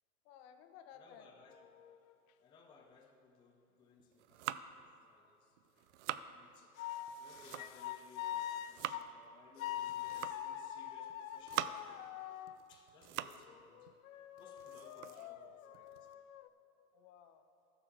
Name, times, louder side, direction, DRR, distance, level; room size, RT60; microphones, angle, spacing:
voice 1, 0.2-1.3 6.8-7.3 15.1-15.3 16.9-17.5, left 8 dB, 45° left, 7 dB, 0.9 m, -58 dB
voice 2, 0.9-1.6 2.4-12.1 12.7-13.9 14.4-16.0, left 4 dB, 10° left, 1 dB, 0.5 m, -62 dB
sound 1, 1.5-2.1 6.8-9.1 9.6-12.6 13.2-16.5, left 11 dB, 65° left, 0.6 m, -44 dB
sound 2, 4.0-4.9 5.6-6.3 7.1-8.0 8.4-9.1 9.9-10.6 11.1-12.0 12.5-13.5 13.9-14.0 14.4-16.1, right 13 dB, 55° right, 0.5 m, -44 dB
13.0 x 6.9 x 4.5 m, 2.8 s
hypercardioid pair, 115°, 44 cm